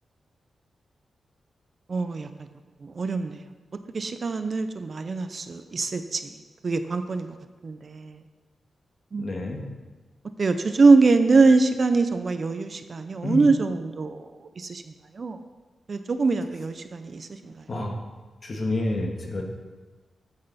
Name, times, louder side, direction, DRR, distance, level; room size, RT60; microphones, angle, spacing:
voice 1, 1.9-2.3 2.8-3.4 3.9-6.2 6.6-7.3 7.6-8.2 9.1-9.4 10.4-14.2 14.6-14.8 15.2-15.4 15.9-17.5, right 3 dB, 40° right, 9 dB, 0.6 m, -23 dB
voice 2, 9.2-9.6 13.2-13.4 17.7-18.0 18.4-19.4, left 2 dB, 40° left, 1 dB, 1.8 m, -28 dB
13.5 x 8.8 x 4.1 m, 1.3 s
wide cardioid pair, 135°, 0 cm